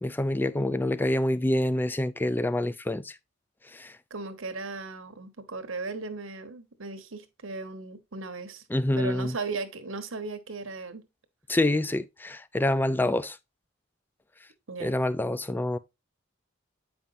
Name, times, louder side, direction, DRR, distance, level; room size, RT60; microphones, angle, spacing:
voice 1, 0.0-3.2 3.7-4.0 8.7-9.4 11.5-13.4 14.8-15.8, left 1 dB, 10° left, 0.3 m, -27 dB
voice 2, 4.1-8.6 9.0-11.1 14.7-14.9, right 3 dB, 70° right, 1.2 m, -37 dB
8.6 x 5.3 x 2.7 m
head